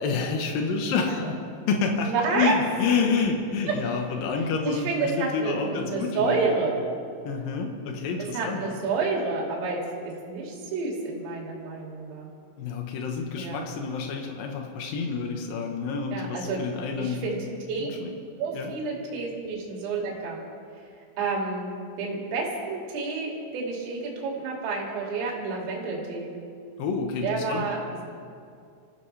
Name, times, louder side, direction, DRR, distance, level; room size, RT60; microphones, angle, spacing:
voice 1, 0.0-1.4 1.7-6.5 7.2-8.6 12.6-17.2 17.8-18.2 18.5-18.7 26.8-27.7, left 5 dB, 85° left, 2 dB, 1.9 m, -28 dB
voice 2, 2.1-2.5 3.7-3.8 4.6-6.8 8.3-9.8 10.0-12.3 13.4-13.6 16.1-16.6 17.0-17.4 17.7-17.9 18.4-20.4 21.2-21.7 22.0-26.3 27.2-27.8, right 4 dB, 75° right, -2 dB, 5.2 m, -29 dB
26.5 x 15.5 x 3.4 m, 2.3 s
omnidirectional pair, 6.0 m